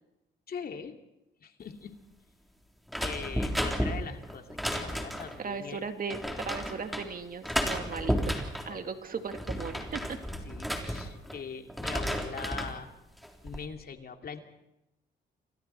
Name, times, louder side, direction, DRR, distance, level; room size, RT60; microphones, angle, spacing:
voice 1, 0.5-1.0 1.4-1.9 3.0-5.8 8.0-8.2 8.7-8.9 10.4-12.9 13.4-14.4, left 6 dB, 50° left, 5 dB, 2.5 m, -42 dB
sound 1, 2.9-5.4 6.1-7.1 7.4-8.7 9.2-11.4 11.7-12.8 13.2-13.6, equal, ahead, 3.6 m, -33 dB
voice 2, 5.4-8.4 8.7-10.2, right 5 dB, 45° right, 7 dB, 2.2 m, -37 dB
29.0 x 25.0 x 4.5 m, 0.93 s
cardioid pair, 90°, 20 cm